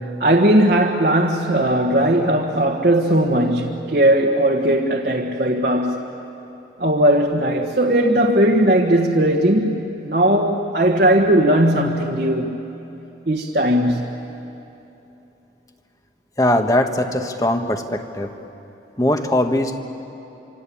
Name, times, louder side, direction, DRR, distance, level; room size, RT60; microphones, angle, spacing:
voice 1, 0.0-6.0 6.8-9.8 10.0-12.6 13.2-14.1, right 1 dB, 55° right, 0 dB, 1.5 m, -18 dB
voice 2, 16.4-18.3 19.0-19.8, left 1 dB, 20° left, 5 dB, 1.3 m, -20 dB
26.5 x 26.0 x 8.6 m, 3.0 s
head